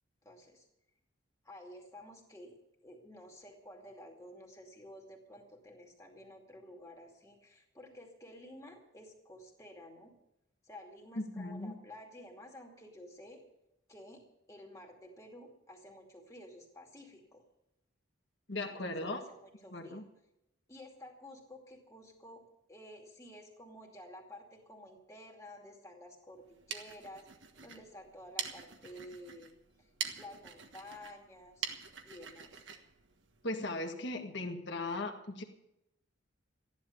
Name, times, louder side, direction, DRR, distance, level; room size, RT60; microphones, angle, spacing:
voice 1, 0.2-0.7 1.4-10.1 10.6-13.4 13.9-14.2 14.5-17.4 18.6-20.0 20.7-27.3 27.6-29.5 29.8-29.9 30.2-31.7 32.0-32.7, left 1 dB, 15° left, 1 dB, 2.5 m, -52 dB
voice 2, 11.1-11.8 18.5-19.2 19.7-20.0 33.4-35.4, left 2 dB, 55° left, 3 dB, 1.6 m, -38 dB
sound 1, 26.4-33.9, right 7 dB, 60° right, 1.4 m, -45 dB
14.5 x 11.0 x 6.9 m, 0.86 s
head